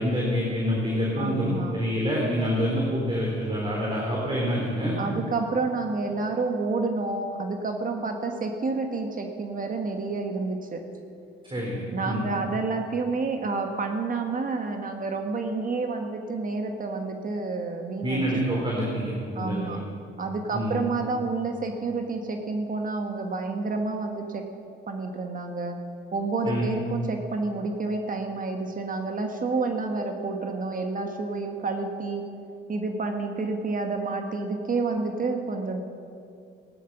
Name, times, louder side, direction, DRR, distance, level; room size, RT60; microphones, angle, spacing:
voice 1, 0.0-5.0 11.5-12.2 18.0-19.8 20.5-20.8 26.4-26.7, equal, 25° right, -3 dB, 3.4 m, -27 dB
voice 2, 1.1-1.8 5.0-10.8 11.9-18.3 19.3-19.8 20.2-24.5 24.9-25.8 26.1-32.2 32.7-35.8, right 3 dB, 45° right, 4 dB, 1.4 m, -29 dB
16.0 x 11.5 x 6.0 m, 2.5 s
cardioid pair, 90°, 20 cm